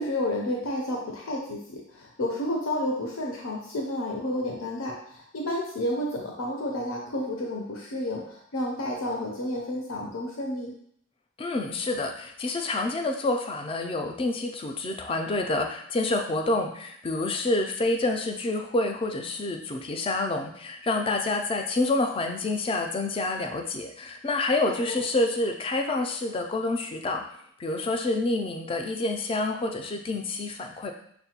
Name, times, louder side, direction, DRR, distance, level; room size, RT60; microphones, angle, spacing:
voice 1, 0.0-10.7 24.9-25.0, left 1 dB, 85° left, -1 dB, 0.6 m, -31 dB
voice 2, 11.4-27.3 27.6-30.9, left 2 dB, 25° left, 4 dB, 0.3 m, -28 dB
5.9 x 2.1 x 2.8 m, 0.68 s
head